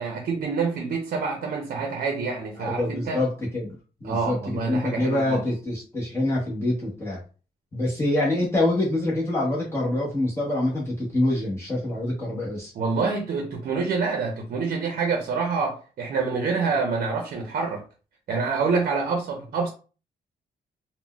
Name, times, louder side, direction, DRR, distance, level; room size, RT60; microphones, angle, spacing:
voice 1, 0.0-3.2 4.0-5.4 12.8-17.8 18.3-19.7, right 4 dB, 60° right, 0.6 m, -27 dB
voice 2, 2.6-3.7 4.0-7.2 7.7-12.7, left 1 dB, 15° left, 0.9 m, -25 dB
3.8 x 2.1 x 2.3 m
wide cardioid pair, 170°, 16 cm